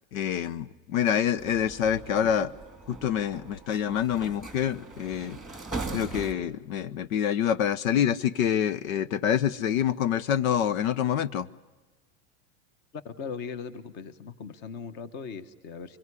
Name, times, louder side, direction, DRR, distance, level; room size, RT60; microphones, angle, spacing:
voice 1, 0.1-2.5 2.9-5.4 5.9-11.5, left 9 dB, 75° left, 18 dB, 1.1 m, -26 dB
sound 1, 1.4-6.3, right 3 dB, ahead, 1.8 m, -40 dB
voice 2, 13.0-16.0, left 5 dB, 25° left, 14 dB, 1.2 m, -39 dB
24.5 x 23.0 x 9.8 m, 1.2 s
supercardioid pair, 175°, 41 cm